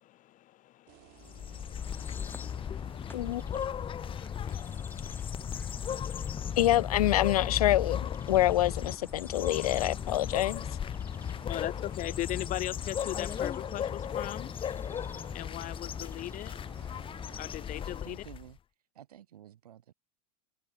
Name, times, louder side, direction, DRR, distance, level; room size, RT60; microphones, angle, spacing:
voice 1, 0.0-3.4 4.4-5.3 5.9-6.6 11.3-14.5 15.3-16.5 17.4-18.2, left 15 dB, 40° left, 2.9 m, -40 dB
sound 1, 0.9-18.0, right 28 dB, 55° right, 6.0 m, -57 dB
sound 2, 1.2-18.5, left 9 dB, 25° left, 1.3 m, -36 dB
sound 3, 1.8-17.4, left 3 dB, 10° left, 2.7 m, -49 dB
voice 2, 6.6-10.6, left 14 dB, 70° left, 1.6 m, -26 dB
voice 3, 18.0-18.6 18.9-19.9, right 11 dB, 75° right, 8.0 m, -51 dB
hypercardioid pair, 90°, 20 cm